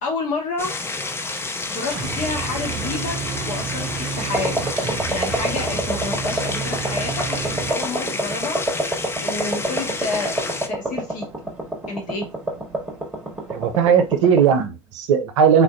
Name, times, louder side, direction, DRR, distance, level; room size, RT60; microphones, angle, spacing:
voice 1, 0.0-0.8 1.7-4.6 5.1-8.6 9.2-11.3 11.9-12.3, left 3 dB, 50° left, 1 dB, 1.5 m, -29 dB
sound 1, 0.6-10.7, left 3 dB, 15° left, 0.5 m, -29 dB
sound 2, 1.9-7.7, right 6 dB, 40° right, 0.6 m, -30 dB
sound 3, 4.3-14.6, right 2 dB, 5° right, 1.3 m, -28 dB
voice 2, 13.5-15.6, right 7 dB, 75° right, 8 dB, 0.7 m, -17 dB
3.6 x 2.5 x 2.6 m, 0.25 s
hypercardioid pair, 85°, 16 cm